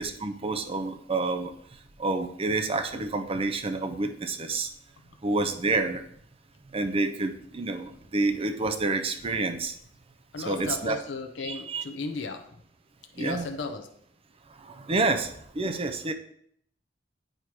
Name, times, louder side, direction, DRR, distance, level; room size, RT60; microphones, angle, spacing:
voice 1, 0.0-1.5 2.0-4.7 5.2-6.0 6.7-9.7 10.4-11.0 11.4-11.8 13.2-13.5 14.6-16.1, right 3 dB, 30° right, 7 dB, 0.6 m, -28 dB
voice 2, 10.3-12.4 13.2-13.9, left 3 dB, 75° left, 4 dB, 0.7 m, -35 dB
8.8 x 3.0 x 4.7 m, 0.66 s
head